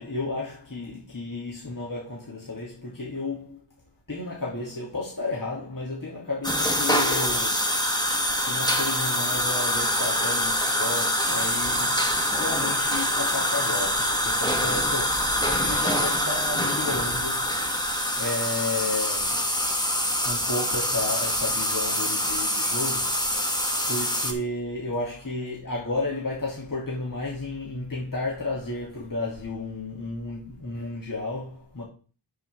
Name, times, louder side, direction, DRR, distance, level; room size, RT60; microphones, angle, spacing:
voice 1, 0.0-3.6 4.1-7.7 8.4-12.0 12.4-17.6 18.2-19.5 20.2-23.3 23.9-31.8, left 2 dB, 45° left, 3.3 m, -32 dB
sound 1, 6.4-24.3, equal, 10° left, 1.9 m, -25 dB
8.2 x 8.2 x 3.8 m
wide cardioid pair, 50°, 44 cm